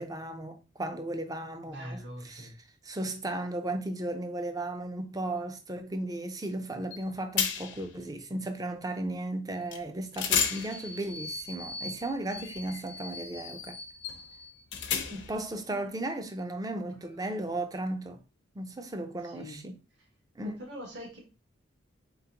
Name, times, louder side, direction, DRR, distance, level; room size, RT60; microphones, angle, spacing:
voice 1, 0.0-2.5 2.8-13.8 15.1-18.2 18.6-19.8 20.4-20.6, right 1 dB, 20° right, 0.5 m, -35 dB
voice 2, 1.7-2.5 15.7-16.0 17.0-17.1 19.2-19.6 20.4-21.2, equal, 60° right, 1.3 m, -43 dB
sound 1, 6.9-7.0 7.4-7.9 9.7-9.8 10.1-15.4, left 7 dB, 65° left, 0.6 m, -34 dB
4.1 x 3.8 x 2.8 m
head